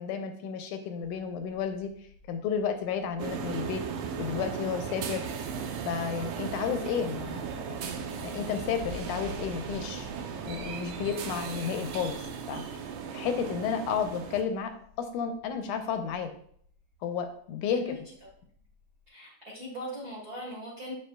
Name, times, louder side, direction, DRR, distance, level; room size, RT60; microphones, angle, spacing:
voice 1, 0.0-1.9 2.3-3.8 4.2-5.2 5.9-7.9 8.2-10.1 10.5-12.9 13.1-16.3 17.0-18.0, left 7 dB, 80° left, 7 dB, 2.0 m, -32 dB
Thunder, 1.0-19.1, left 3 dB, 25° right, 1.5 m, -52 dB
sound 1, 3.2-14.4, right 7 dB, 85° right, 1.4 m, -37 dB
voice 2, 19.1-20.9, equal, 50° right, -4 dB, 1.2 m, -40 dB
7.4 x 6.4 x 2.2 m, 0.62 s
omnidirectional pair, 3.7 m